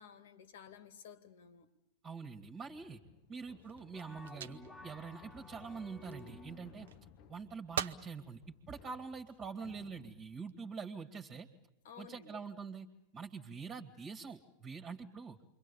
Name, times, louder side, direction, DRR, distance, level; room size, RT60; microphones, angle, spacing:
voice 1, 0.0-1.7 11.8-12.4, left 7 dB, 60° left, 2.4 m, -54 dB
voice 2, 2.0-3.0 3.3-6.9 7.3-11.5 12.0-12.9 13.1-15.4, right 5 dB, 25° right, 2.2 m, -45 dB
sound 1, 2.7-10.4, left 9 dB, 40° left, 1.2 m, -61 dB
sound 2, 3.3-6.4 6.9-7.4 7.7-8.1 8.7-9.4 10.1-10.5, right 9 dB, 60° right, 0.9 m, -44 dB
sound 3, 3.9-6.8, left 2 dB, 5° left, 1.8 m, -54 dB
28.5 x 24.5 x 7.1 m
figure-of-eight pair, 90°, 0 cm